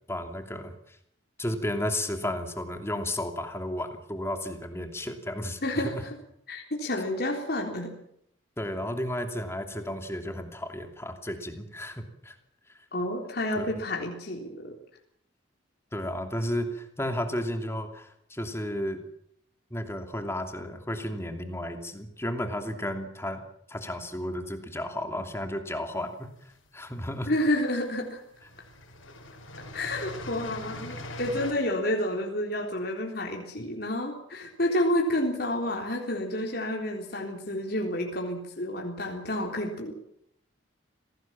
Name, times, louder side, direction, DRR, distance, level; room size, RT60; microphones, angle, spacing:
voice 1, 0.1-1.0 1.4-6.0 8.6-12.4 12.7-12.8 13.6-13.7 15.9-19.0 19.7-23.4 23.7-27.3, left 1 dB, 15° left, 6 dB, 2.8 m, -33 dB
voice 2, 5.6-6.2 6.5-7.9 12.9-14.8 27.3-28.2 29.7-39.9, left 1 dB, 50° left, 0 dB, 3.7 m, -30 dB
sound 1, 26.1-27.0 27.9-28.0 28.3-31.5, left 1 dB, 85° left, 5.1 m, -41 dB
26.5 x 18.5 x 7.4 m, 0.72 s
head